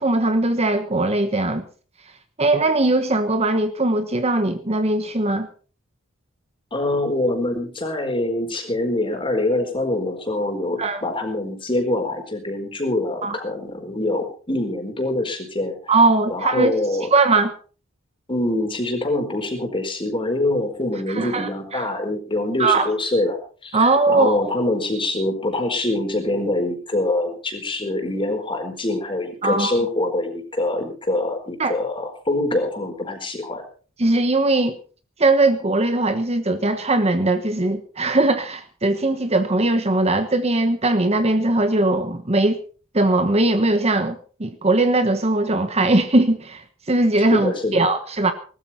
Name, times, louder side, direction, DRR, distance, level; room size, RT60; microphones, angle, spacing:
voice 1, 0.0-1.6 2.4-5.5 10.8-11.0 13.2-13.4 15.9-16.8 17.1-17.5 21.1-21.8 22.6-22.9 23.7-24.3 29.4-29.8 31.6-31.8 34.0-34.8 35.2-42.6 42.9-48.3, right 2 dB, 30° right, 1.2 m, -20 dB
voice 2, 6.7-15.9 16.3-17.1 18.3-33.6 47.3-47.8, left 2 dB, 25° left, 4.4 m, -24 dB
19.5 x 13.5 x 4.3 m
head